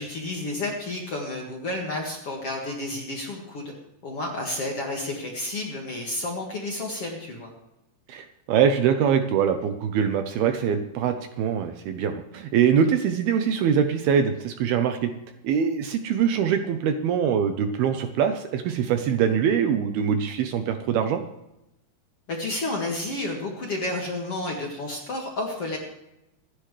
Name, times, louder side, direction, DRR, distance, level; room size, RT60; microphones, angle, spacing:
voice 1, 0.0-3.7 4.0-7.5 22.3-25.8, left 2 dB, 45° left, -1 dB, 2.2 m, -31 dB
voice 2, 8.1-15.1 15.4-21.2, right 7 dB, 75° right, 7 dB, 2.5 m, -23 dB
26.0 x 10.0 x 3.3 m, 0.90 s
omnidirectional pair, 5.0 m